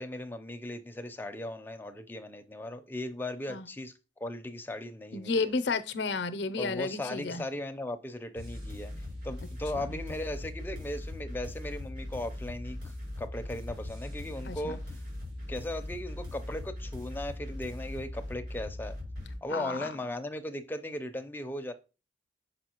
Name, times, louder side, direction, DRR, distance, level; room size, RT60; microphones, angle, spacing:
voice 1, 0.0-5.5 6.6-12.8 13.2-15.0 15.5-19.0 19.4-21.7, left 1 dB, 10° left, 0.5 m, -37 dB
voice 2, 5.1-7.4 9.8-10.0 14.5-14.8 19.5-19.9, left 4 dB, 70° left, 0.6 m, -32 dB
sound 1, 8.4-19.3, left 1 dB, 65° right, 3.8 m, -40 dB
6.3 x 5.5 x 2.9 m
head